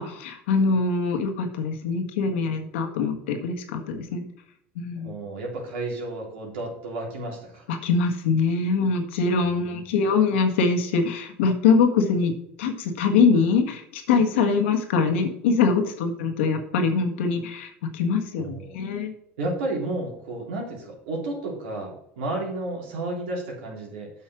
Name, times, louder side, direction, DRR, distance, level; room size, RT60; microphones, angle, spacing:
voice 1, 0.0-4.3 4.7-5.1 7.7-12.3 12.6-19.1, left 5 dB, 85° left, 5 dB, 1.7 m, -23 dB
voice 2, 5.0-7.7 9.4-9.8 18.4-18.8 19.4-24.1, right 2 dB, 85° right, -1 dB, 3.6 m, -32 dB
8.3 x 5.5 x 6.2 m, 0.75 s
supercardioid pair, 90°, 6 cm